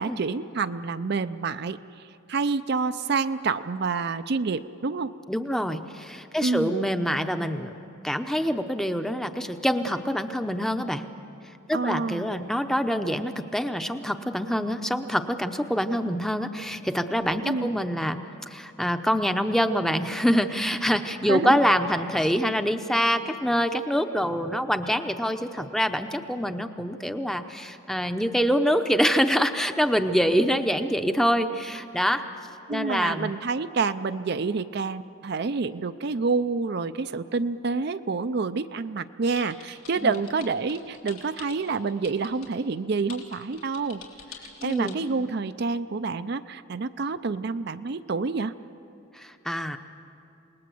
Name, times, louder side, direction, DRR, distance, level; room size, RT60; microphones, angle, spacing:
voice 1, 0.0-1.8 2.3-5.1 6.4-6.8 11.7-12.3 17.4-17.7 21.3-21.6 32.7-44.0 44.6-48.5, right 4 dB, 50° right, 11 dB, 0.5 m, -28 dB
voice 2, 5.3-7.7 8.0-11.0 11.7-32.2 32.7-33.3 40.0-40.1 44.6-45.0 49.1-49.8, equal, ahead, 8 dB, 0.7 m, -25 dB
sound 1, 39.3-42.5 43.1-44.9, left 7 dB, 85° left, 3.6 m, -45 dB
28.0 x 20.0 x 7.8 m, 2.7 s
head